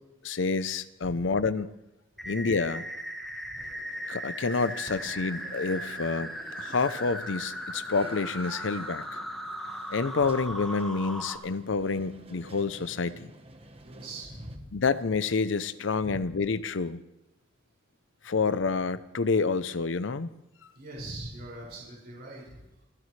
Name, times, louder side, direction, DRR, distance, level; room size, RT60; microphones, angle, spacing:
voice 1, 0.2-1.7 2.3-2.8 4.1-9.2 9.9-13.3 14.7-17.0 18.2-20.3, left 4 dB, 75° left, 15 dB, 0.7 m, -28 dB
sound 1, 2.2-11.4, equal, ahead, 1.6 m, -37 dB
sound 2, 3.6-14.6, right 2 dB, 30° right, 1.2 m, -51 dB
voice 2, 13.8-14.7 16.0-16.2 20.7-22.8, right 1 dB, 55° right, -4 dB, 5.9 m, -42 dB
29.0 x 12.5 x 3.3 m, 0.90 s
head